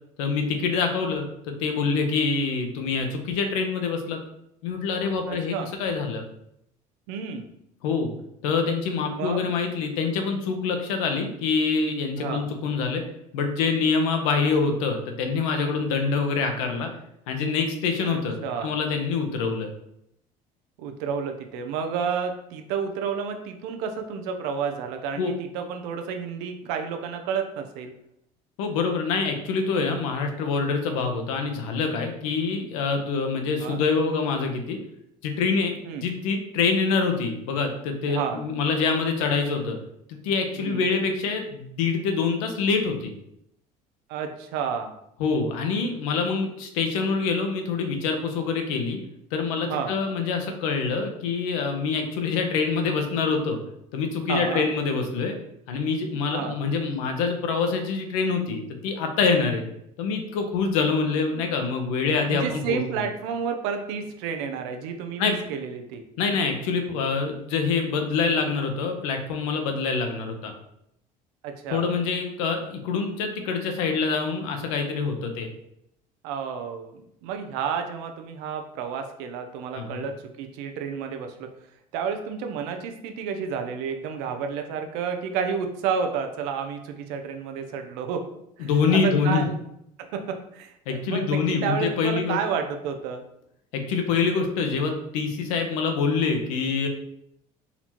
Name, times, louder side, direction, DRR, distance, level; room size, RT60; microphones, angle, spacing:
voice 1, 0.2-4.2 4.6-6.2 7.8-8.1 8.4-13.0 13.3-16.9 17.3-19.7 25.2-25.3 28.6-34.8 35.2-35.7 36.0-39.8 40.1-43.1 45.2-49.0 49.3-53.6 53.9-55.3 55.7-59.6 60.0-63.0 65.2-65.3 66.2-70.5 71.7-75.5 79.7-80.0 88.6-89.5 90.9-92.4 93.7-96.9, left 5 dB, 85° left, 4 dB, 0.8 m, -25 dB
voice 2, 5.3-5.7 7.1-7.4 9.1-9.4 12.2-12.4 18.1-18.7 20.8-27.9 33.6-33.8 35.8-36.1 38.1-38.4 40.6-40.9 44.1-44.9 49.6-49.9 54.3-54.7 56.3-56.6 59.3-59.5 62.3-66.0 71.4-71.9 76.2-81.5 81.9-88.3 88.6-89.5 90.0-93.2, right 6 dB, 80° right, 5 dB, 0.7 m, -31 dB
4.2 x 2.9 x 4.2 m, 0.78 s
supercardioid pair, 85°, 17 cm